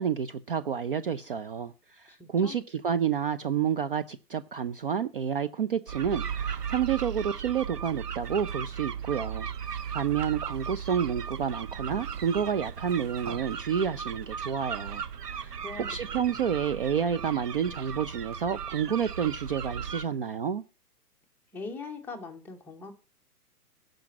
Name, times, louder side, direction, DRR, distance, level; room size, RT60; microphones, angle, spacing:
voice 1, 0.0-15.5 15.8-20.6, right 7 dB, 40° right, 0.4 m, -29 dB
voice 2, 2.1-2.6 15.5-15.9 16.1-16.4 21.5-22.9, left 4 dB, 5° left, 0.7 m, -41 dB
sound 1, 5.9-20.0, right 7 dB, 85° right, 1.0 m, -36 dB
11.5 x 5.2 x 7.5 m
hypercardioid pair, 140°, 46 cm